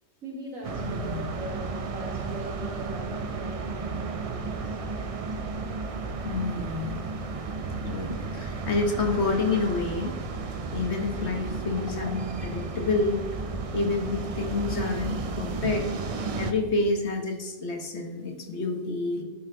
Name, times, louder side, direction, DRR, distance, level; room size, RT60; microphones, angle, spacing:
voice 1, 0.2-4.8, right 1 dB, 70° right, -2 dB, 2.5 m, -41 dB
sound 1, 0.6-16.5, right 4 dB, 50° right, 0.4 m, -33 dB
voice 2, 0.8-1.2 6.2-6.9 7.3-7.4 7.7-10.1 10.7-13.2 13.7-15.9 16.4-19.2, left 3 dB, 55° left, 3 dB, 1.3 m, -28 dB
10.0 x 6.5 x 3.8 m, 1.2 s
omnidirectional pair, 1.4 m